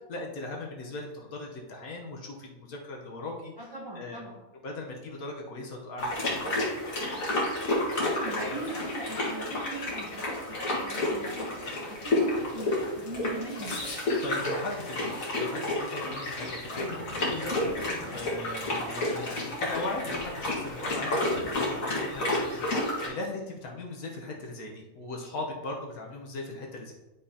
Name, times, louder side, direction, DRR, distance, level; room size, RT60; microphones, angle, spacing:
voice 1, 0.1-3.5 3.9-4.2 4.6-6.6 8.4-8.7 14.2-26.9, left 2 dB, 80° left, -1 dB, 1.5 m, -39 dB
voice 2, 3.6-4.4 8.0-13.8, right 1 dB, 20° right, -3 dB, 0.8 m, -39 dB
sound 1, 6.0-23.1, left 1 dB, 65° left, 2.1 m, -31 dB
10.0 x 5.1 x 2.8 m, 1.1 s
omnidirectional pair, 1.5 m